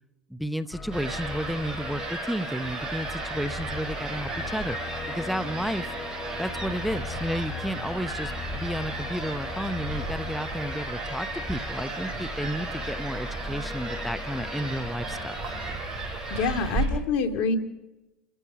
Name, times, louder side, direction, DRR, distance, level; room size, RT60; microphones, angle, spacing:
voice 1, 0.3-5.9 6.4-15.4, equal, ahead, 10 dB, 0.8 m, -32 dB
sound 1, 0.7-15.8, left 5 dB, 20° left, 1.2 m, -39 dB
sound 2, 0.9-16.9, right 3 dB, 30° right, 6.1 m, -34 dB
voice 2, 16.3-17.6, left 4 dB, 60° left, 7 dB, 2.2 m, -26 dB
29.5 x 14.5 x 6.2 m, 1.1 s
hypercardioid pair, 85°, 2 cm